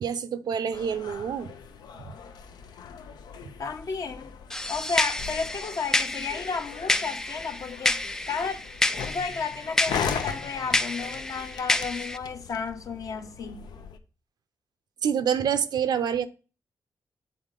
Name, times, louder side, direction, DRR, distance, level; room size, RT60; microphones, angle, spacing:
voice 1, 0.0-1.5 15.0-16.3, right 8 dB, 75° right, 0.7 m, -27 dB
sound 1, 0.7-14.0, left 6 dB, 80° left, 0.7 m, -39 dB
voice 2, 3.6-4.3 4.7-8.0 8.3-8.6 9.0-13.7, left 5 dB, 50° left, 1.0 m, -33 dB
sound 2, 4.5-12.2, left 2 dB, 10° left, 0.3 m, -29 dB
8.4 x 4.1 x 3.7 m
wide cardioid pair, 145°, 7 cm